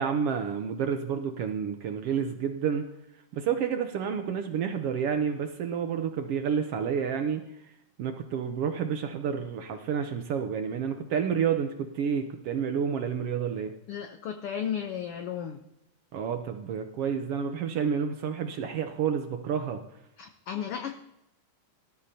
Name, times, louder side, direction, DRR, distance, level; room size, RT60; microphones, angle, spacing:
voice 1, 0.0-2.9 3.3-7.4 8.0-13.7 16.1-19.8, right 7 dB, 75° right, 6 dB, 1.4 m, -29 dB
voice 2, 13.9-15.6 20.2-21.0, left 8 dB, 75° left, 5 dB, 1.3 m, -34 dB
18.0 x 13.0 x 2.8 m, 0.85 s
omnidirectional pair, 3.5 m